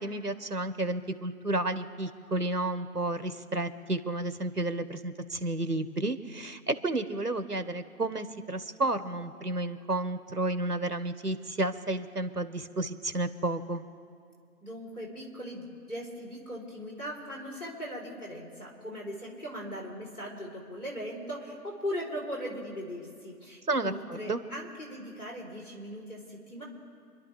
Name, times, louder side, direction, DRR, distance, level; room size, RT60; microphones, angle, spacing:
voice 1, 0.0-13.8 23.7-24.4, right 2 dB, 75° right, 11 dB, 1.4 m, -31 dB
voice 2, 14.6-26.6, equal, 65° left, -1 dB, 4.3 m, -39 dB
29.0 x 11.5 x 3.5 m, 2.3 s
figure-of-eight pair, 175°, 47 cm